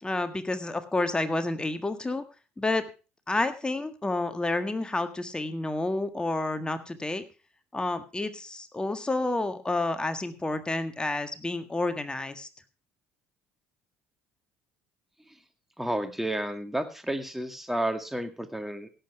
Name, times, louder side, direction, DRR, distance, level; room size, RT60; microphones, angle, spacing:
voice 1, 0.0-2.2 2.6-2.8 3.3-7.2 7.7-12.5, left 2 dB, 15° left, 9 dB, 1.7 m, -29 dB
voice 2, 15.8-18.9, right 1 dB, 5° right, 8 dB, 2.0 m, -31 dB
17.0 x 7.9 x 4.8 m, 0.33 s
hypercardioid pair, 60°, 6 cm